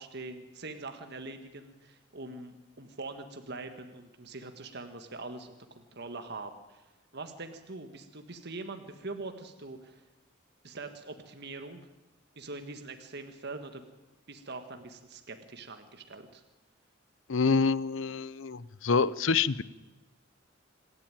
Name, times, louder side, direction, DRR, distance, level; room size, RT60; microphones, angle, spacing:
voice 1, 0.0-6.8 7.1-10.0 10.6-11.8 12.3-13.8 14.3-16.4, right 3 dB, 55° right, 7 dB, 1.7 m, -43 dB
voice 2, 17.3-19.6, left 5 dB, 70° left, 19 dB, 0.7 m, -27 dB
26.5 x 12.0 x 9.1 m, 1.1 s
head